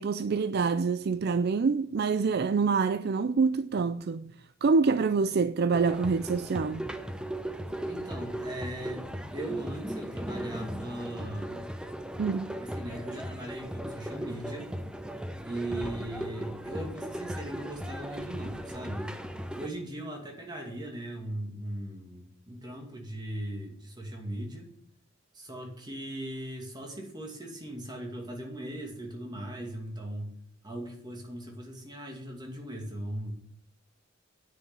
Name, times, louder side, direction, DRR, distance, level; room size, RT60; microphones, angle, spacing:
voice 1, 0.0-4.3 4.6-6.9 12.2-12.5, right 4 dB, 50° right, 0.4 m, -26 dB
sound 1, 5.7-19.7, right 1 dB, 5° right, 0.7 m, -37 dB
voice 2, 7.9-11.7 12.6-14.7 15.4-19.1 19.6-24.7 25.3-30.3 30.6-33.3, right 1 dB, 20° right, 2.4 m, -39 dB
9.7 x 6.7 x 8.6 m
head